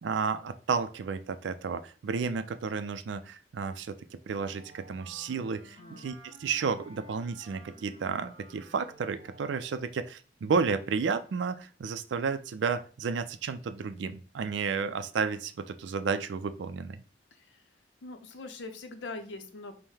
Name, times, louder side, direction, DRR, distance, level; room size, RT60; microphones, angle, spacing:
voice 1, 0.0-17.0, right 5 dB, 75° right, 11 dB, 0.4 m, -32 dB
Wind instrument woodwind instrument, 4.4-10.1, right 1 dB, 30° right, 0.7 m, -54 dB
voice 2, 5.8-6.2 17.3-17.6 18.0-19.7, left 3 dB, 80° left, 7 dB, 0.6 m, -43 dB
5.4 x 2.1 x 3.2 m, 0.39 s
head